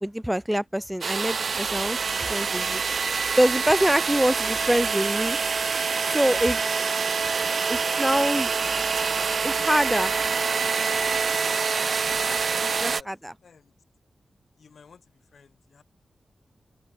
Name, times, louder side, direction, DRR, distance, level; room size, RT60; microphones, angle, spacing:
voice 1, 0.0-2.8 3.4-5.4 6.1-6.8 7.7-8.5 9.4-10.1 12.6-13.3, equal, 5° right, 0.3 m, -25 dB
sound 1, 1.0-13.0, right 5 dB, 55° right, 0.8 m, -26 dB
voice 2, 14.6-15.0 15.3-15.8, left 6 dB, 65° left, 3.8 m, -53 dB
wide cardioid pair, 120°, 0 cm